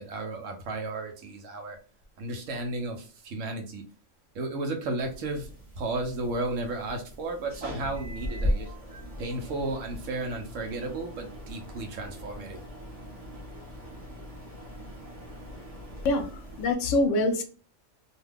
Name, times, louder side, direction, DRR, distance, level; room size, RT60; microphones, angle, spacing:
voice 1, 0.0-1.8 2.2-3.8 4.3-5.5 5.8-8.7 9.2-12.6, right 2 dB, 90° right, 4 dB, 1.1 m, -33 dB
sound 1, 5.0-16.7, equal, 30° right, 0.9 m, -38 dB
voice 2, 16.0-17.4, left 2 dB, 80° left, 7 dB, 1.0 m, -25 dB
2.7 x 2.2 x 3.4 m, 0.38 s
omnidirectional pair, 1.3 m